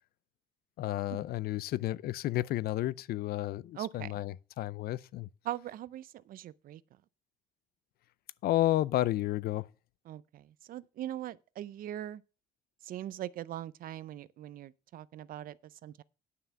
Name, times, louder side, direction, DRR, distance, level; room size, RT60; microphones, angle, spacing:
voice 1, 0.8-5.3 8.4-9.6, left 15 dB, 65° left, 0.5 m, -31 dB
voice 2, 3.7-4.2 5.4-6.8 10.1-12.2 12.8-16.0, right 12 dB, 55° right, 0.5 m, -41 dB
9.6 x 5.7 x 6.9 m
cardioid pair, 110°, 17 cm